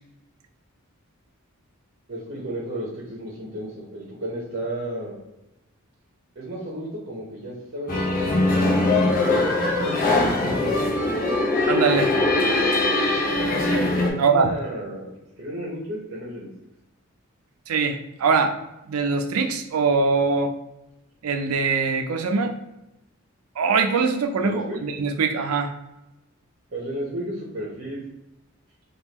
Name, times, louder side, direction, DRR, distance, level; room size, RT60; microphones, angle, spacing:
voice 1, 2.1-5.2 6.4-8.4 9.3-10.9 14.1-16.5 24.4-24.8 26.7-28.0, right 1 dB, 45° right, -3 dB, 0.8 m, -33 dB
sound 1, 7.9-14.1, left 2 dB, 40° left, 0.6 m, -21 dB
voice 2, 11.7-12.1 14.2-14.5 17.7-18.6 18.9-20.5 21.2-22.5 23.6-25.7, right 4 dB, 85° right, 6 dB, 0.4 m, -22 dB
3.5 x 2.3 x 2.9 m, 0.92 s
head